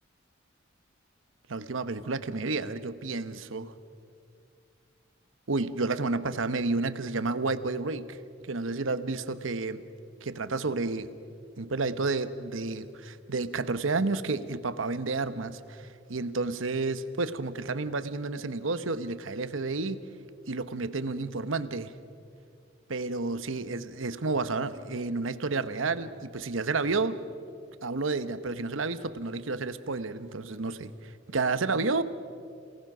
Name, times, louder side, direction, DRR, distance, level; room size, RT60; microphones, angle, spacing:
voice 1, 1.5-3.7 5.5-8.2 8.5-9.8 10.2-11.1 11.6-20.0 20.5-21.9 22.9-27.2 27.8-30.9 31.3-32.0, right 3 dB, 85° right, 12 dB, 1.0 m, -31 dB
28.0 x 18.0 x 6.2 m, 2.4 s
head